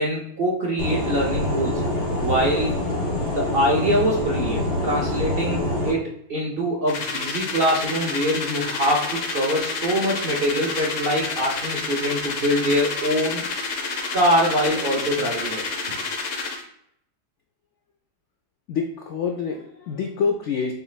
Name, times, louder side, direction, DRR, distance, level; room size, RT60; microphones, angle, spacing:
voice 1, 0.0-1.8 2.2-2.8 3.3-13.4 14.1-15.6 15.9-16.0, equal, 55° right, -2 dB, 0.6 m, -24 dB
sound 1, 0.8-5.9, left 1 dB, 40° left, 1.4 m, -25 dB
sound 2, 6.9-16.6, left 4 dB, 60° left, 0.9 m, -29 dB
voice 2, 18.7-20.7, left 5 dB, 80° left, 2 dB, 0.6 m, -26 dB
6.9 x 3.1 x 2.3 m, 0.75 s
omnidirectional pair, 1.8 m